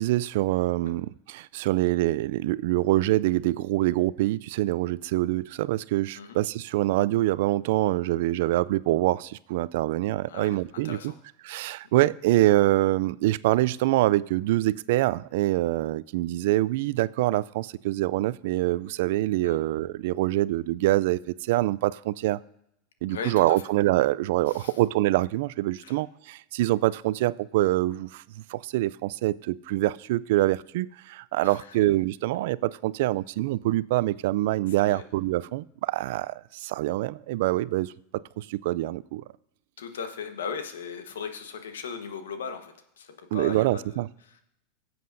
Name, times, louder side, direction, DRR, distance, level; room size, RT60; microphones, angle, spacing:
voice 1, 0.0-11.0 11.4-22.4 23.0-28.2 28.5-37.9 38.4-39.2 43.3-44.1, right 16 dB, 65° right, 0.3 m, -25 dB
voice 2, 10.3-11.2 19.4-19.6 23.1-23.6 24.5-24.8 25.8-26.0 31.4-31.8 34.7-35.0 39.8-44.4, left 6 dB, 80° left, 1.2 m, -38 dB
18.5 x 7.7 x 2.6 m
hypercardioid pair, 95°, 0 cm